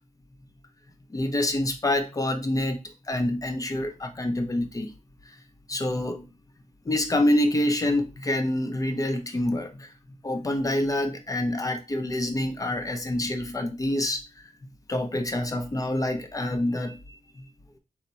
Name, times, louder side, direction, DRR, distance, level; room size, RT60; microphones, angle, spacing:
voice 1, 1.1-2.8 3.1-4.9 5.3-5.4 5.7-6.2 6.9-9.9 10.2-14.2 14.9-17.0 17.4-17.5, left 1 dB, 25° left, 0.7 m, -26 dB
4.4 x 2.8 x 4.0 m
wide cardioid pair, 145°, 14 cm